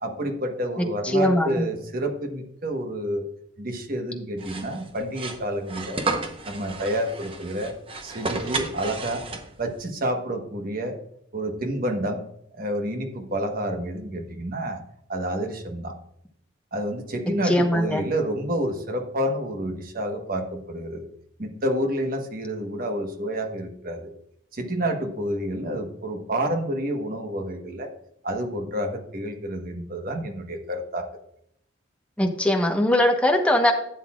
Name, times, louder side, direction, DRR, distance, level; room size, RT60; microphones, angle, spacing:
voice 1, 0.0-3.2 3.6-6.0 6.5-7.7 8.0-9.2 9.6-11.0 11.3-12.2 12.5-14.8 15.1-16.0 16.7-21.1 21.4-24.1 24.5-27.9 28.2-31.1, right 1 dB, 45° right, 4 dB, 1.2 m, -29 dB
voice 2, 1.1-1.6 17.4-18.0 32.2-33.7, left 1 dB, 5° left, 3 dB, 1.0 m, -21 dB
sound 1, 4.4-9.7, right 3 dB, 25° right, 0.9 m, -32 dB
12.0 x 8.1 x 2.4 m, 0.74 s
head